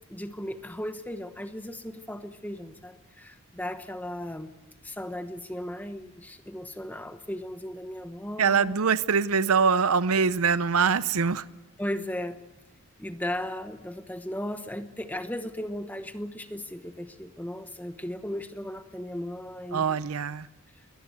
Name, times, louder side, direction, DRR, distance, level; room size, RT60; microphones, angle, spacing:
voice 1, 0.1-4.5 4.8-8.7 11.8-12.4 13.0-19.9, left 1 dB, 5° left, 9 dB, 1.0 m, -36 dB
voice 2, 8.4-11.4 19.7-20.5, right 5 dB, 80° right, 16 dB, 0.7 m, -23 dB
22.5 x 19.0 x 7.9 m, 1.0 s
head